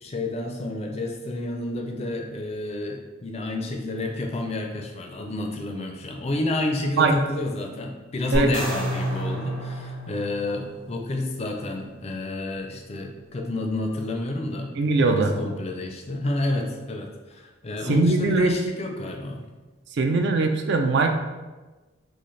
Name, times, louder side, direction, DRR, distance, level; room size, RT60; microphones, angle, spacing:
voice 1, 0.0-19.4, left 2 dB, 30° left, 3 dB, 0.4 m, -30 dB
sound 1, 8.3-10.7, equal, 80° right, 0.8 m, -33 dB
sound 2, 8.5-11.3, right 1 dB, 35° right, 0.8 m, -32 dB
voice 2, 14.8-15.4 17.8-18.6 19.9-21.2, right 3 dB, 60° right, 5 dB, 0.4 m, -21 dB
3.9 x 2.4 x 3.1 m, 1.2 s
head